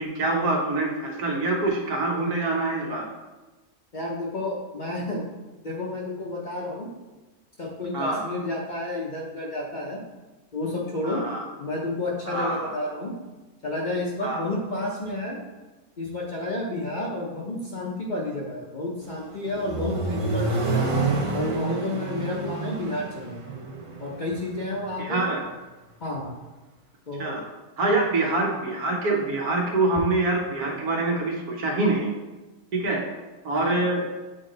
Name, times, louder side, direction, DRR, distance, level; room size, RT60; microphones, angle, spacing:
voice 1, 0.0-3.1 7.9-8.2 11.0-11.4 12.3-12.7 14.2-14.4 25.0-25.4 27.2-27.4 27.8-32.1 32.7-33.0 33.4-34.1, right 2 dB, 80° right, 0 dB, 1.6 m, -25 dB
voice 2, 3.9-5.2 5.6-6.9 7.6-10.0 10.5-11.2 11.6-13.1 13.6-15.4 16.0-20.9 21.3-23.4 24.0-25.2 26.0-26.3 27.1-27.4 27.9-28.0 33.5-33.8, left 2 dB, 40° left, -3 dB, 0.7 m, -31 dB
Accelerating revving vroom, 19.0-25.0, right 3 dB, 45° right, 0.4 m, -28 dB
8.0 x 3.1 x 3.8 m, 1.2 s
omnidirectional pair, 1.6 m